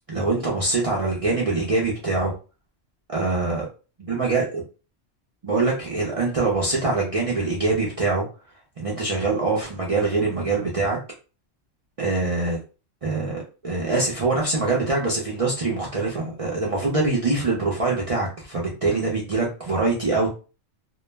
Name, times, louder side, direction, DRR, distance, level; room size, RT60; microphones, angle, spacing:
voice 1, 0.1-2.3 3.1-3.7 4.1-4.6 5.4-8.2 8.8-11.0 12.0-12.6 13.0-20.3, right 3 dB, 55° right, -4 dB, 0.3 m, -24 dB
2.2 x 2.1 x 3.2 m, 0.34 s
omnidirectional pair, 1.3 m